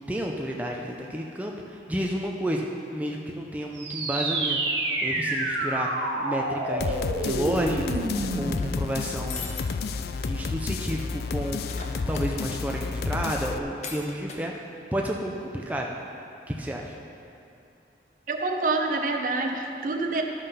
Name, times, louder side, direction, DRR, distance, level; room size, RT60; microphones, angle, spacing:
voice 1, 0.1-2.6 2.9-4.6 5.0-9.5 10.2-14.5 14.9-15.9 16.5-17.0, equal, 10° right, 0 dB, 0.5 m, -31 dB
sound 1, 3.7-8.8, right 2 dB, 85° right, 1.3 m, -28 dB
sound 2, 6.8-13.6, left 4 dB, 60° left, 0.4 m, -31 dB
sound 3, 7.9-8.8 9.3-9.7 10.1-10.2 10.4-10.5 11.6-12.6 13.8-14.4, left 5 dB, 40° left, 0.8 m, -40 dB
voice 2, 18.3-20.2, right 3 dB, 45° right, 4 dB, 0.7 m, -27 dB
12.5 x 5.5 x 5.5 m, 2.6 s
head